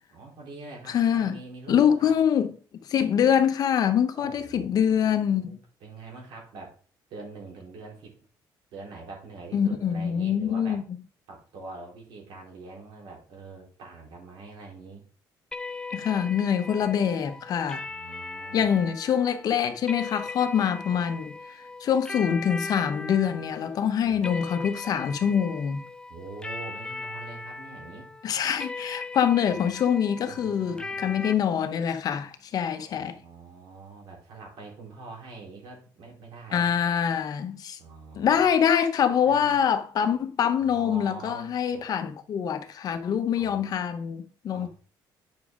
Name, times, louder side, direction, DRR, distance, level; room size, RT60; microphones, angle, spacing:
voice 1, 0.1-2.1 4.2-6.8 7.1-8.1 8.7-10.8 11.3-15.0 16.8-16.9 17.7-18.8 24.0-24.3 26.1-28.1 30.2-31.2 32.7-36.7 37.8-38.4 39.2-39.5 40.6-41.8 43.4-43.8 44.5-44.7, right 3 dB, 75° right, 4.0 m, -44 dB
voice 2, 0.9-1.4 1.7-2.5 2.9-5.6 9.5-11.0 15.9-17.9 18.5-21.3 21.8-25.8 28.2-33.2 36.5-37.8 38.1-44.7, left 8 dB, 50° left, 0.9 m, -25 dB
sound 1, 15.5-31.3, left 3 dB, 10° left, 0.5 m, -39 dB
9.1 x 6.2 x 3.8 m
cardioid pair, 145°, 8 cm